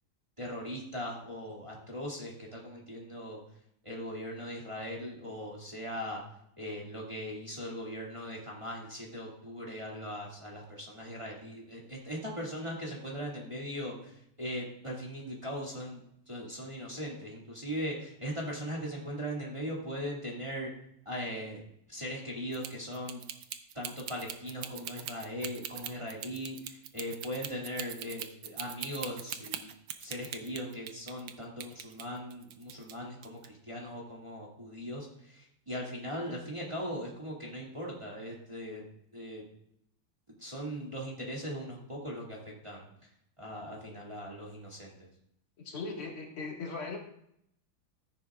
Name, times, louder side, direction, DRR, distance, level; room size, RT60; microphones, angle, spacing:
voice 1, 0.4-3.4 3.8-6.2 6.6-20.7 21.1-21.6 21.9-23.2 23.7-29.7 30.0-38.8 39.1-39.4 40.4-42.9 43.4-45.1, equal, 15° right, -3 dB, 2.0 m, -39 dB
sound 1, 22.5-31.3 31.6-33.0 33.2-33.5, right 10 dB, 70° right, 1.4 m, -41 dB
voice 2, 45.6-47.0, left 3 dB, 75° left, -1 dB, 2.7 m, -38 dB
14.0 x 10.0 x 2.4 m, 0.73 s
omnidirectional pair, 2.4 m